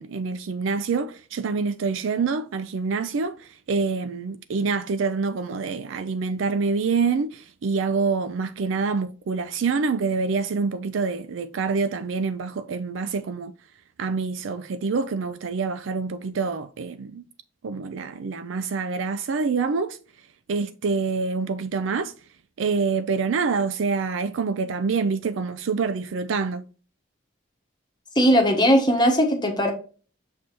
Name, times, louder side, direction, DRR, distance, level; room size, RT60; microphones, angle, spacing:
voice 1, 0.0-13.5 14.0-17.2 17.6-20.0 20.5-22.1 22.6-26.6, right 4 dB, 75° right, 0.4 m, -26 dB
voice 2, 28.1-29.7, equal, 20° left, 1.1 m, -19 dB
6.9 x 3.2 x 4.2 m
head